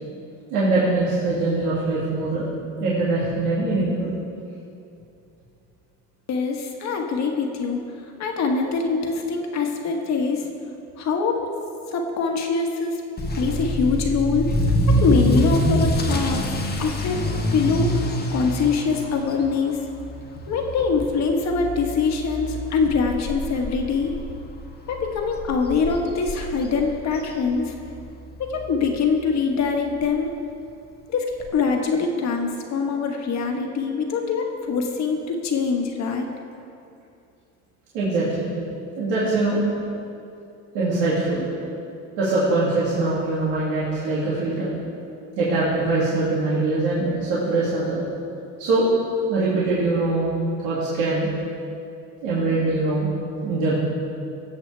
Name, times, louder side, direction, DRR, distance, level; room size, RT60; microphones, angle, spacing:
voice 1, 0.5-2.5 2.8-4.1 37.9-38.5 39.0-39.6 40.7-41.5 42.2-44.7 45.4-48.0 48.6-48.9 49.3-50.3 50.6-51.3 52.2-53.1 53.4-53.8, right 2 dB, 90° right, -9 dB, 2.4 m, -22 dB
voice 2, 6.3-7.8 8.2-10.5 11.0-11.5 11.9-13.0 13.4-14.5 15.0-16.5 16.8-19.8 20.5-24.1 24.9-27.7 28.4-30.3 31.1-31.3 31.5-36.3, left 5 dB, 50° left, 2 dB, 1.5 m, -23 dB
Motor vehicle (road) / Accelerating revving vroom, 13.2-28.0 28.3-28.7 29.2-29.3 29.6-29.7 30.0-30.1 31.4-31.5, equal, 30° left, 1.3 m, -26 dB
18.0 x 7.6 x 3.4 m, 2.6 s
cardioid pair, 110°, 34 cm